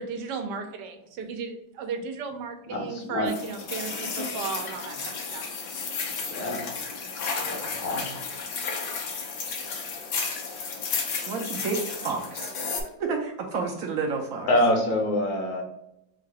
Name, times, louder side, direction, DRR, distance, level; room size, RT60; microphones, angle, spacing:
voice 1, 0.0-5.4, right 4 dB, 85° right, 6 dB, 1.3 m, -35 dB
voice 2, 2.7-3.3 6.3-6.6 7.4-8.2 14.5-15.6, left 1 dB, 65° left, 1 dB, 1.4 m, -26 dB
sound 1, 3.3-12.8, left 4 dB, 85° left, 1.5 m, -33 dB
voice 3, 11.3-12.5 13.0-14.5, right 4 dB, 70° right, 1 dB, 0.9 m, -30 dB
3.7 x 2.4 x 4.6 m, 0.83 s
omnidirectional pair, 1.8 m